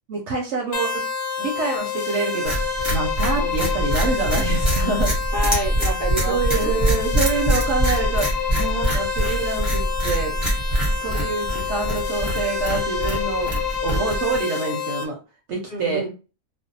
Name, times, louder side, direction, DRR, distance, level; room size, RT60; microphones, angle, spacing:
voice 1, 0.1-1.0 1.4-2.5 2.9-5.1 6.3-10.3 10.7-13.5 13.8-15.2 15.5-16.0, right 4 dB, 65° right, 0 dB, 0.7 m, -26 dB
sound 1, 0.7-15.0, left 6 dB, 90° left, 1.1 m, -28 dB
sound 2, 2.4-14.4, equal, ahead, 0.5 m, -24 dB
voice 2, 3.4-3.7 5.3-6.7 11.0-11.2 15.7-16.1, equal, 55° left, -3 dB, 0.6 m, -28 dB
2.5 x 2.0 x 2.6 m, 0.32 s
omnidirectional pair, 1.6 m